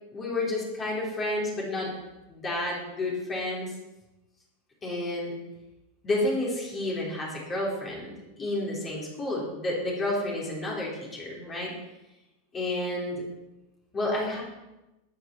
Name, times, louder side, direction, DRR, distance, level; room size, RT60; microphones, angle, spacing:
voice 1, 0.1-1.9 2.3-3.7 4.8-5.3 6.0-11.7 12.5-13.2 13.9-14.4, left 1 dB, 20° left, -4 dB, 4.0 m, -30 dB
13.5 x 10.0 x 4.6 m, 0.99 s
figure-of-eight pair, 90°, 0 cm